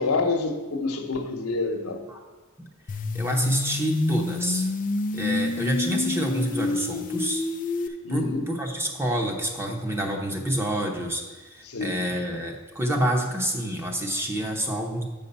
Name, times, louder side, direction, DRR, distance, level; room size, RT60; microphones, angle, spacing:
voice 1, 0.0-2.0 8.0-8.4 11.6-11.9, left 3 dB, 75° left, 4 dB, 1.0 m, -27 dB
voice 2, 2.6-4.7 5.1-7.4 7.8-15.0, right 1 dB, 10° right, 1 dB, 0.9 m, -28 dB
sound 1, 2.9-7.9, left 3 dB, 40° left, 0.4 m, -28 dB
7.6 x 5.5 x 5.4 m, 1.3 s
head